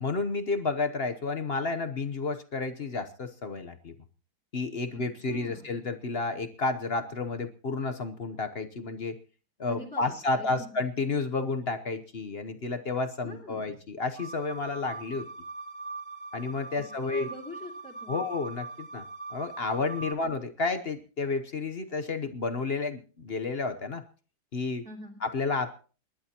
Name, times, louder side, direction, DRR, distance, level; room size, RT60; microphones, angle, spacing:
voice 1, 0.0-3.9 4.5-9.2 9.6-15.3 16.3-17.3 18.1-19.0 19.3-24.0 24.5-24.8 25.2-25.7, left 3 dB, 50° left, 9 dB, 0.7 m, -31 dB
voice 2, 5.3-5.7 9.7-10.7 13.2-13.7 17.0-18.2 20.0-20.3 24.8-25.2, equal, 5° left, -3 dB, 3.0 m, -45 dB
sound 1, 14.2-20.1, right 3 dB, 20° left, 2.8 m, -41 dB
29.0 x 11.5 x 2.9 m, 0.38 s
omnidirectional pair, 2.2 m